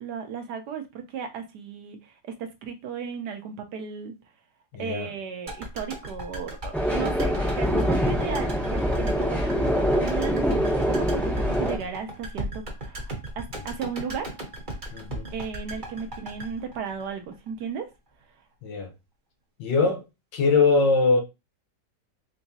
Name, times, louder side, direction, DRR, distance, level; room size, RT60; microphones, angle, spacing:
voice 1, 0.0-4.1 4.8-14.3 15.3-17.9, right 7 dB, 70° right, 1.2 m, -35 dB
voice 2, 4.7-5.1 14.9-15.3 18.6-18.9 19.6-20.0 20.3-21.2, left 4 dB, 85° left, 1.5 m, -22 dB
sound 1, 5.5-17.6 17.9-18.0, right 1 dB, 35° right, 1.0 m, -37 dB
sound 2, 6.7-11.8, equal, ahead, 0.5 m, -24 dB
3.8 x 3.4 x 2.8 m
omnidirectional pair, 1.9 m